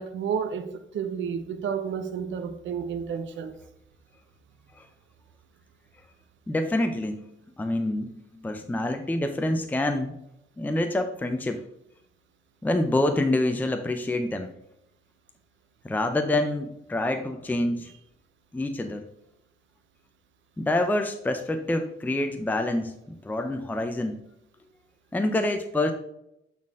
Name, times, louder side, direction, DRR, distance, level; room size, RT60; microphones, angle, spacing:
voice 1, 0.0-3.5, right 7 dB, 70° right, 0.9 m, -31 dB
voice 2, 6.5-7.3 7.6-10.2 10.6-11.6 12.6-14.5 15.8-17.9 18.5-19.0 20.6-24.2 25.1-25.9, left 1 dB, 10° left, 0.6 m, -27 dB
8.3 x 4.2 x 3.6 m
cardioid pair, 90°, 20 cm